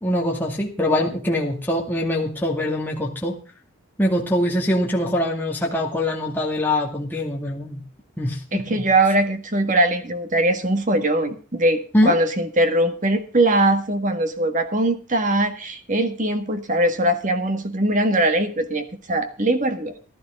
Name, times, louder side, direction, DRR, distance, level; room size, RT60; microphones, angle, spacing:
voice 1, 0.0-3.4 4.0-7.8 8.2-8.8 11.9-12.2, left 1 dB, 10° left, -2 dB, 2.2 m, -23 dB
voice 2, 8.5-19.9, right 1 dB, 35° right, 9 dB, 1.7 m, -21 dB
16.0 x 12.0 x 3.7 m, 0.38 s
head